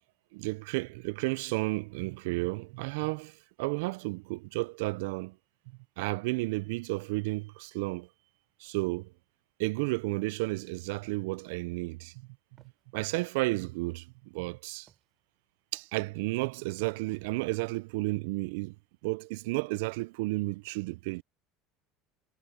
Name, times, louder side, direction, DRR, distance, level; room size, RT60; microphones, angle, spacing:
voice 1, 0.3-5.4 6.0-8.1 8.6-9.1 9.6-12.3 12.9-14.9 15.7-18.7 19.0-21.2, right 23 dB, 80° right, 0.3 m, -32 dB
Walk footsteps, 12.6-12.8 13.5-13.9 14.9-15.2 16.0-16.2 17.1-17.6, right 8 dB, 35° right, 3.0 m, -66 dB
supercardioid pair, 115°, 0 cm